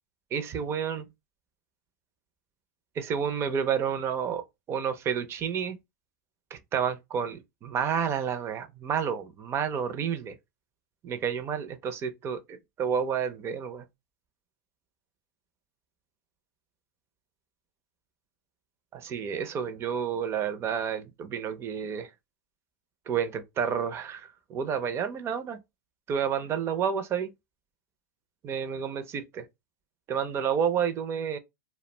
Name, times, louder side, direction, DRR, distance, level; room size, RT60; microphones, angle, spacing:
voice 1, 0.3-1.1 3.0-4.4 4.7-5.8 6.5-10.4 11.0-13.8 18.9-22.1 23.1-25.6 26.1-27.3 28.4-29.5 30.1-31.4, right 7 dB, 25° right, 0.4 m, -30 dB
2.3 x 2.1 x 3.2 m
hypercardioid pair, 120°, 10 cm